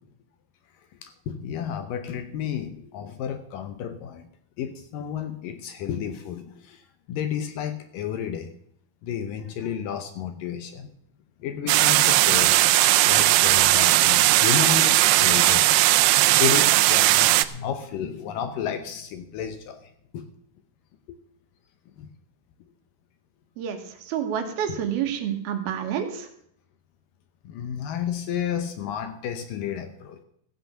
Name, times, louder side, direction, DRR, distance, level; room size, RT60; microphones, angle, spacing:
voice 1, 1.0-4.2 4.6-6.8 7.1-8.5 9.0-10.9 11.4-20.3 22.0-22.1 27.5-30.2, left 8 dB, 70° left, 9 dB, 2.2 m, -32 dB
sound 1, 11.7-17.4, right 16 dB, 90° right, 2.7 m, -18 dB
voice 2, 24.1-26.3, right 9 dB, 70° right, 6 dB, 3.1 m, -28 dB
15.0 x 7.9 x 6.8 m, 0.69 s
omnidirectional pair, 4.6 m